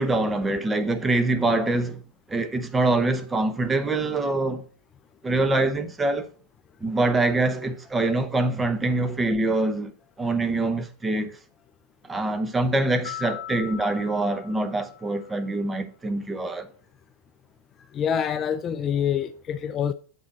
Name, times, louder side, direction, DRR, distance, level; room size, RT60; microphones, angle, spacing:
voice 1, 0.0-2.0 2.3-4.6 5.2-6.3 6.8-9.9 10.2-11.4 12.1-16.7, right 2 dB, 10° right, 0.8 m, -24 dB
sound 1, 13.0-15.6, left 13 dB, 55° left, 1.9 m, -40 dB
voice 2, 17.9-19.9, left 8 dB, 25° left, 0.4 m, -26 dB
7.2 x 6.5 x 4.2 m
supercardioid pair, 140°, 0 cm